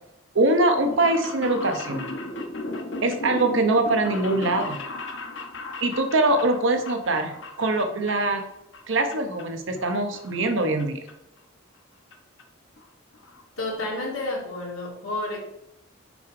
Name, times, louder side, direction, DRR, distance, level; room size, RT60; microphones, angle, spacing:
voice 1, 0.3-2.1 3.0-4.8 5.8-8.4 8.9-11.0, right 2 dB, 65° right, 6 dB, 0.9 m, -23 dB
sound 1, 0.7-8.5 8.7-9.4 9.8-10.8 11.1-11.2 12.1-12.2 12.4-12.5 12.8-12.9 13.1-13.4 13.8-13.9 14.1-14.2, left 2 dB, 60° left, 0.9 m, -36 dB
voice 2, 13.6-15.4, left 2 dB, 85° left, -1 dB, 1.9 m, -30 dB
5.3 x 4.8 x 4.8 m, 0.84 s
head